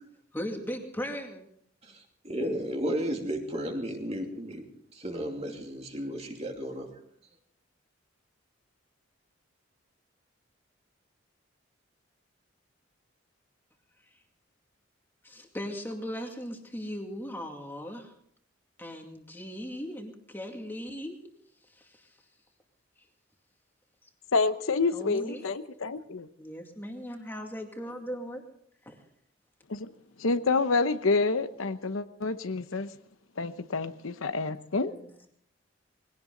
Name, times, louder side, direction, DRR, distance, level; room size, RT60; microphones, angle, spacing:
voice 1, 0.3-1.4 15.2-18.1 18.8-21.2 21.8-21.9 24.9-25.7 26.4-28.4 28.9-29.0 34.8-35.1, equal, 10° left, 2 dB, 2.3 m, -38 dB
voice 2, 2.3-4.6 4.9-6.9, equal, 30° right, 2 dB, 2.7 m, -33 dB
voice 3, 24.3-26.3 29.7-29.9 30.2-32.9 33.4-34.9, left 3 dB, 80° left, 11 dB, 0.9 m, -28 dB
21.5 x 17.0 x 3.9 m, 0.65 s
head